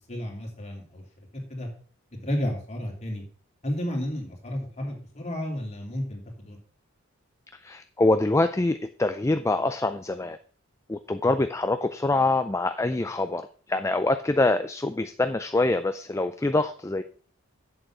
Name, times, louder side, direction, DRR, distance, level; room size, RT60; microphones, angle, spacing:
voice 1, 0.1-1.0 1.3-1.7 2.2-3.2 3.6-6.6 11.3-11.4, left 1 dB, 35° left, 0 dB, 3.0 m, -32 dB
voice 2, 7.6-10.4 10.9-13.4 13.7-17.0, left 2 dB, 15° left, 9 dB, 0.4 m, -25 dB
7.9 x 7.8 x 6.0 m, 0.43 s
head